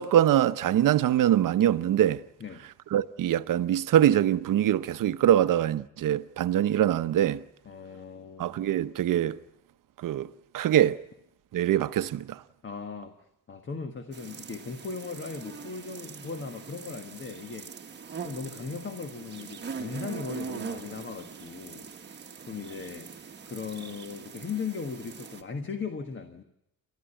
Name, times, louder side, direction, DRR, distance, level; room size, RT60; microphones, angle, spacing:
voice 1, 0.0-2.2 2.9-7.4 8.4-9.4 10.0-10.3 10.5-11.0 11.5-12.4, right 11 dB, 65° right, 0.8 m, -23 dB
voice 2, 7.6-8.6 12.6-13.1 13.5-17.7 18.2-21.9 22.5-23.1 23.4-26.4, left 5 dB, 35° left, 1.4 m, -38 dB
sound 1, 14.1-25.4, right 5 dB, 30° right, 1.3 m, -42 dB
29.0 x 12.5 x 9.9 m
cardioid pair, 155°, 35 cm